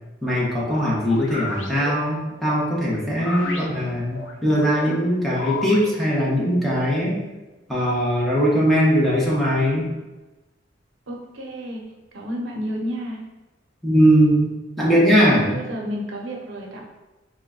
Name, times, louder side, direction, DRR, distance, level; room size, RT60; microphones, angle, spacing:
voice 1, 0.2-7.2 7.7-9.9 13.8-14.5 14.8-15.6, equal, ahead, -6 dB, 0.8 m, -20 dB
sound 1, 0.6-5.9, left 3 dB, 75° left, 0.5 m, -34 dB
voice 2, 11.1-11.8 12.1-13.2 15.4-16.8, equal, 85° right, 0 dB, 0.7 m, -31 dB
3.7 x 2.1 x 3.6 m, 1.1 s
head